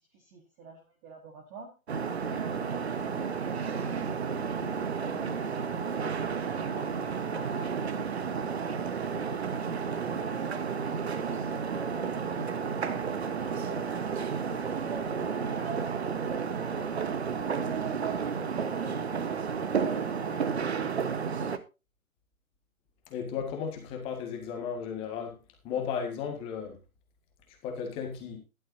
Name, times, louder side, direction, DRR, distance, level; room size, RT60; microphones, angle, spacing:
voice 1, 0.1-1.7 2.2-8.0 8.3-10.8 11.1-14.6 15.4-21.2, right 4 dB, 15° right, 1.4 m, -47 dB
sound 1, 1.9-21.6, right 6 dB, 50° right, 1.2 m, -32 dB
voice 2, 23.1-25.4 25.6-26.8 27.6-28.4, left 7 dB, 15° left, 1.7 m, -34 dB
15.0 x 11.5 x 2.7 m
figure-of-eight pair, 145°, 42 cm